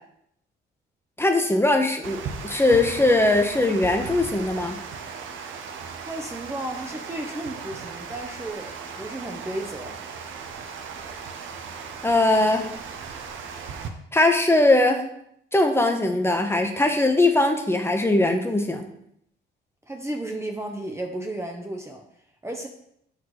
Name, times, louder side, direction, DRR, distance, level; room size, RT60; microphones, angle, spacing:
voice 1, 1.2-4.8 12.0-12.7 14.1-15.0 15.5-18.9, left 2 dB, 10° left, 5 dB, 0.9 m, -20 dB
Water, 2.0-13.9, right 6 dB, 75° right, 0.8 m, -37 dB
voice 2, 6.0-10.0 19.9-22.0 22.4-22.7, right 1 dB, 15° right, 2 dB, 0.7 m, -33 dB
6.0 x 4.8 x 4.0 m, 0.72 s
cardioid pair, 90°, 20 cm